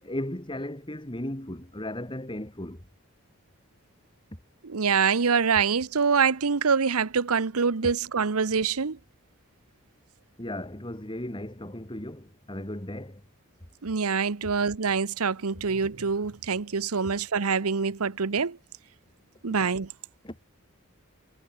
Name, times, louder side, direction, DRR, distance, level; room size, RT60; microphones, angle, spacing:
voice 1, 0.0-2.8 10.4-13.2 15.5-15.6 20.2-20.4, left 1 dB, 20° left, 2.7 m, -36 dB
voice 2, 4.6-9.0 13.8-18.6 19.4-19.9, right 5 dB, 85° right, 0.9 m, -25 dB
head